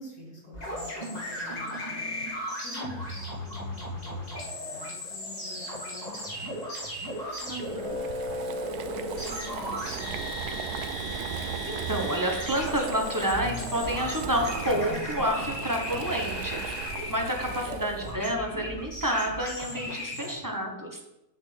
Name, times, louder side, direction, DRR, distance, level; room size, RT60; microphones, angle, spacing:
voice 1, 0.0-2.2 2.6-6.7 7.3-10.6 17.5-17.6, left 2 dB, 70° left, -6 dB, 3.1 m, -47 dB
sound 1, 0.5-20.3, left 1 dB, 25° left, 2.0 m, -36 dB
Boiling, 6.9-18.2, right 8 dB, 90° right, 1.1 m, -38 dB
voice 2, 7.5-8.0 11.4-21.0, equal, 15° right, 1 dB, 0.9 m, -29 dB
8.3 x 7.7 x 3.4 m, 0.91 s
omnidirectional pair, 1.6 m